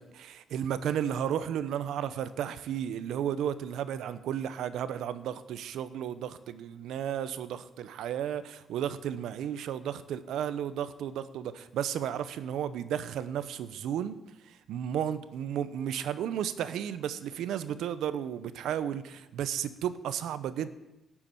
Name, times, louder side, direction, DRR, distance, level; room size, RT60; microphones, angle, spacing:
voice 1, 0.0-20.7, right 9 dB, 80° right, 14 dB, 0.8 m, -33 dB
12.0 x 7.2 x 8.5 m, 0.98 s
cardioid pair, 90°, 0 cm